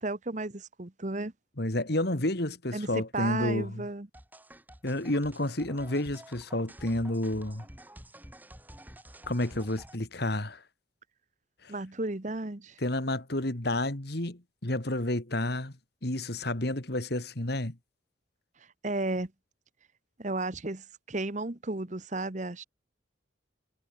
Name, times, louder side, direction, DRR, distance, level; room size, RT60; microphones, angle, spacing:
voice 1, 0.0-1.3 2.7-4.1 11.7-12.8 18.8-19.3 20.2-22.6, right 2 dB, 35° right, 1.2 m, -33 dB
voice 2, 1.6-3.9 4.8-7.6 9.3-10.6 11.6-11.7 12.8-15.7 16.0-17.8, left 1 dB, 55° left, 2.3 m, -30 dB
sound 1, 4.1-9.9, right 1 dB, 10° right, 7.1 m, -50 dB
head